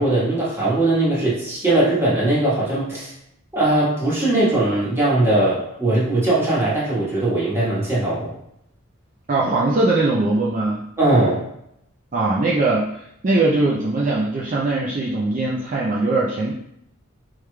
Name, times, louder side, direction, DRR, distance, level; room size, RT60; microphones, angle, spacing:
voice 1, 0.0-3.1 3.5-8.3 11.0-11.4, right 2 dB, 10° right, -8 dB, 1.3 m, -20 dB
voice 2, 9.3-10.8 12.1-16.5, right 2 dB, 35° right, -5 dB, 0.4 m, -21 dB
4.9 x 3.1 x 2.2 m, 0.77 s
head